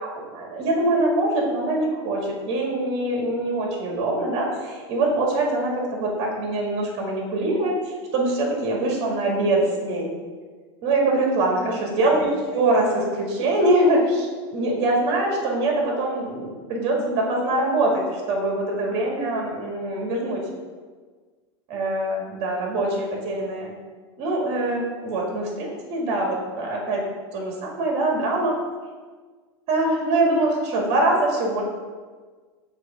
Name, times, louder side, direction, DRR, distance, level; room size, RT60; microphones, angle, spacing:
voice 1, 0.0-10.1 10.8-20.4 21.7-23.7 24.2-28.6 29.7-31.6, right 2 dB, 50° right, -1 dB, 2.0 m, -23 dB
7.5 x 3.2 x 5.0 m, 1.5 s
supercardioid pair, 120°, 14 cm